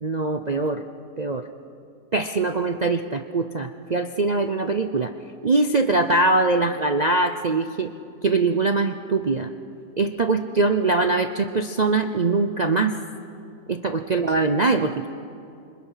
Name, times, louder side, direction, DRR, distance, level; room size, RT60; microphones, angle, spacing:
voice 1, 0.0-0.8 1.2-1.5 2.1-5.1 5.4-7.9 8.2-9.5 10.0-13.0 13.7-15.1, right 3 dB, 75° right, 6 dB, 0.3 m, -22 dB
29.5 x 25.5 x 5.7 m, 2.5 s
omnidirectional pair, 1.9 m